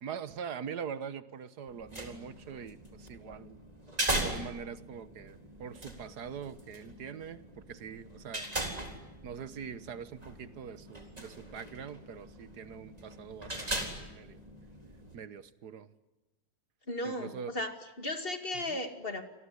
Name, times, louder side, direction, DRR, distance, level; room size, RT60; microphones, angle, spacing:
voice 1, 0.0-3.6 4.1-8.5 9.2-14.4 15.1-15.9 17.0-17.5 18.5-18.8, right 7 dB, 65° right, 15 dB, 1.7 m, -43 dB
sound 1, 1.7-15.1, right 1 dB, 20° right, 4.0 m, -40 dB
voice 2, 16.9-19.2, left 1 dB, 30° left, 8 dB, 2.7 m, -36 dB
28.5 x 21.5 x 9.8 m, 1.0 s
omnidirectional pair, 1.9 m